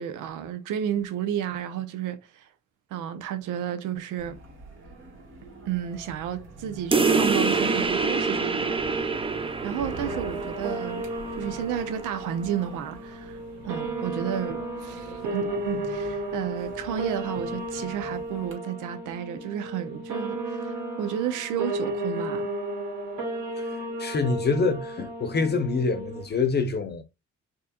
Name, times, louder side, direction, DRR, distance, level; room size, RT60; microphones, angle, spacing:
voice 1, 0.0-2.5 2.9-4.4 5.7-9.2 9.6-11.1 11.3-13.4 13.7-22.5, right 9 dB, 90° right, 0.7 m, -32 dB
sound 1, 4.2-18.5, right 1 dB, 40° right, 2.1 m, -46 dB
sound 2, 6.9-12.0, right 4 dB, 20° right, 0.4 m, -26 dB
sound 3, 10.0-26.4, right 1 dB, 70° right, 1.8 m, -34 dB
voice 2, 24.0-27.0, left 4 dB, 35° left, 0.8 m, -26 dB
4.6 x 3.0 x 2.3 m
cardioid pair, 90°, 30 cm